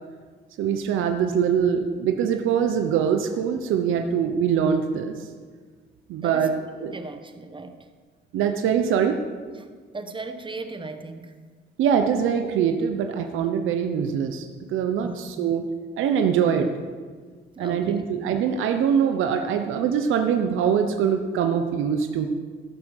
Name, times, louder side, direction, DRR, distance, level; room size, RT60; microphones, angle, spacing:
voice 1, 0.6-5.3 6.1-6.5 6.8-6.9 8.3-9.2 11.8-15.6 16.0-16.7 17.6-22.3, right 7 dB, 85° right, 5 dB, 0.8 m, -23 dB
voice 2, 6.2-7.9 9.5-11.3 15.0-15.5 17.5-18.1, right 3 dB, 25° right, 8 dB, 1.1 m, -38 dB
15.0 x 6.1 x 6.5 m, 1.5 s
cardioid pair, 90°, 20 cm